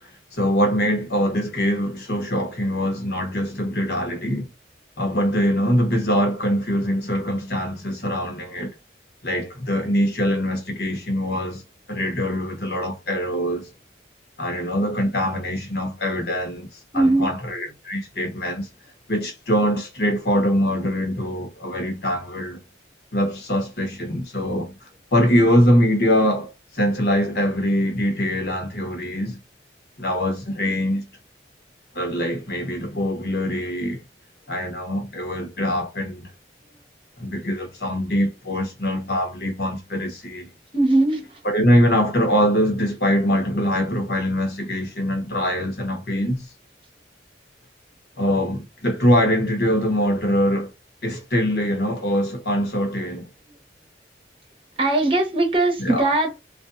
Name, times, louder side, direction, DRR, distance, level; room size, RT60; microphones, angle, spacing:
voice 1, 0.0-4.5 5.0-8.7 9.2-11.6 11.9-13.7 14.4-18.7 19.1-22.6 23.1-29.4 30.0-31.1 31.9-34.0 34.5-36.3 37.2-40.5 41.4-46.5 48.2-50.7 51.0-53.3 55.8-56.1, equal, 60° left, 1.1 m, -23 dB
voice 2, 16.9-17.2 40.7-41.4 54.8-56.5, right 2 dB, 30° right, 0.8 m, -20 dB
3.2 x 2.6 x 2.5 m
head